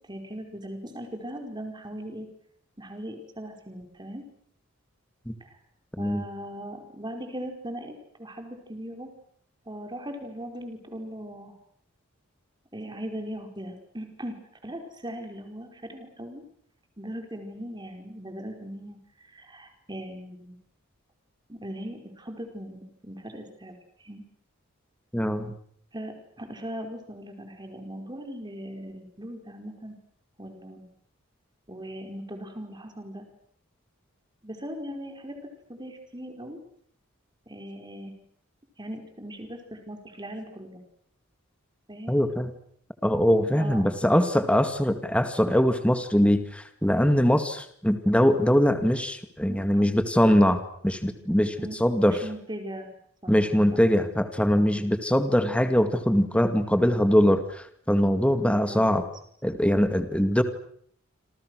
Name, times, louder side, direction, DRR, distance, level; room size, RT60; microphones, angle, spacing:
voice 1, 0.1-2.3 2.8-4.2 5.4-5.5 6.0-9.1 9.7-11.6 12.7-16.4 17.0-20.6 21.5-23.7 24.0-24.2 25.9-29.9 30.4-30.9 31.7-33.3 34.4-36.6 37.5-38.1 38.8-40.8 41.9-42.1 43.5-44.2 49.5-49.9 51.6-51.8 52.0-52.9 53.2-53.3 53.7-53.8, equal, 20° right, 4 dB, 4.9 m, -39 dB
voice 2, 25.1-25.5 42.1-42.5 43.0-51.5 51.8-52.2 53.3-57.4 57.9-59.0 59.4-60.4, equal, 5° left, 8 dB, 2.1 m, -22 dB
28.0 x 27.0 x 6.5 m, 0.65 s
head